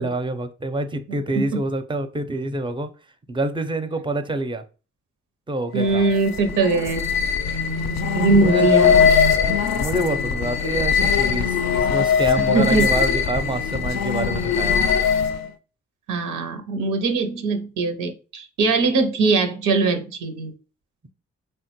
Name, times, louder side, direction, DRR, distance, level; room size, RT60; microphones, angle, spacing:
voice 1, 0.0-2.9 3.3-4.6 5.5-6.1 8.3-8.7 9.8-14.8, right 2 dB, 15° right, 9 dB, 0.5 m, -26 dB
voice 2, 1.1-1.6 5.7-7.1 8.1-9.7 12.5-12.9 16.1-20.5, right 3 dB, 90° right, 7 dB, 0.5 m, -21 dB
sound 1, 5.7-15.5, left 7 dB, 60° left, 0.4 m, -21 dB
3.4 x 2.1 x 2.9 m, 0.34 s
cardioid pair, 50°, 31 cm